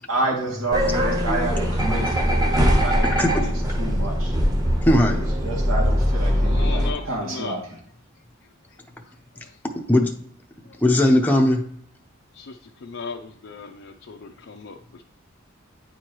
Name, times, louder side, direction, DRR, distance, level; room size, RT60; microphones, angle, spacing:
voice 1, 0.1-4.3 5.1-7.8, right 2 dB, 85° right, -3 dB, 2.3 m, -29 dB
Bus Boarding Ambience Singapore, 0.7-6.9, equal, 20° right, 1.0 m, -21 dB
voice 2, 4.8-5.2 9.6-10.1 10.8-11.7, left 1 dB, 10° left, 1 dB, 0.6 m, -18 dB
voice 3, 6.4-7.6 12.3-12.6 12.8-15.0, left 4 dB, 60° left, 2 dB, 0.5 m, -37 dB
9.1 x 4.7 x 3.0 m, 0.63 s
head